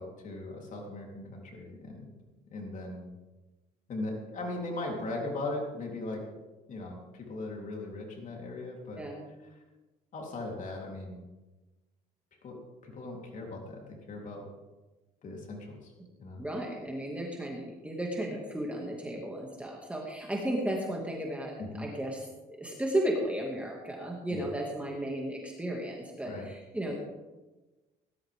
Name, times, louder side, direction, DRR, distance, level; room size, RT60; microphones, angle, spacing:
voice 1, 0.0-2.1 2.5-3.1 3.9-6.2 6.7-9.0 10.1-11.2 12.4-12.6 12.8-14.4 15.2-15.9 16.2-16.4 21.6-21.9 24.3-24.4 26.3-26.5, left 2 dB, 50° left, 0 dB, 3.8 m, -38 dB
voice 2, 9.0-9.3 16.4-27.0, right 1 dB, 5° right, -2 dB, 2.3 m, -34 dB
18.5 x 12.5 x 3.7 m, 1.1 s
cardioid pair, 110°, 17 cm